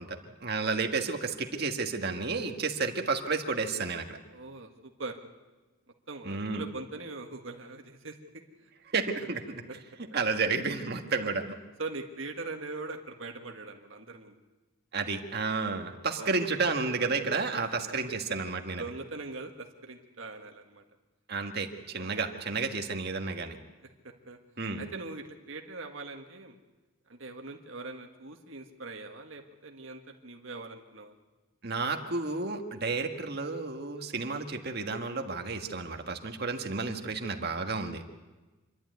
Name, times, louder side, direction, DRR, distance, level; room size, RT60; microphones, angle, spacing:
voice 1, 0.0-4.2 6.2-6.6 8.9-9.6 10.1-11.6 14.9-18.8 21.3-23.6 24.6-24.8 31.6-38.1, right 4 dB, 50° right, 4 dB, 1.7 m, -31 dB
voice 2, 4.3-5.2 6.1-8.1 8.6-8.7 9.2-9.3 11.2-11.3 11.8-14.4 16.1-16.4 17.5-17.6 18.8-20.8 22.0-22.2 24.0-24.4 24.8-26.5 27.1-31.1, right 3 dB, 70° right, 3 dB, 1.7 m, -41 dB
27.0 x 11.5 x 9.3 m, 1.2 s
head